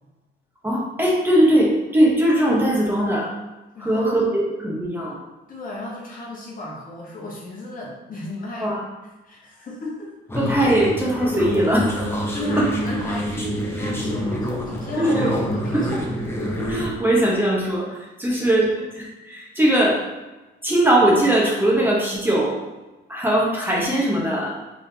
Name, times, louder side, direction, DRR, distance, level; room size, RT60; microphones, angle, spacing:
voice 1, 0.6-3.3 3.8-5.2 8.6-8.8 10.4-12.3 12.6-12.7 15.0-15.3 15.7-15.8 16.7-20.0 20.6-22.6 23.1-24.5, right 1 dB, 10° right, -4 dB, 1.0 m, -20 dB
voice 2, 3.7-4.1 5.5-8.7 9.2-10.1 12.2-16.1 18.2-18.4, left 1 dB, 40° left, -3 dB, 1.1 m, -34 dB
sound 1, 10.3-16.9, equal, 10° left, 0.8 m, -27 dB
3.7 x 3.5 x 2.8 m, 1.1 s
cardioid pair, 95°, 21 cm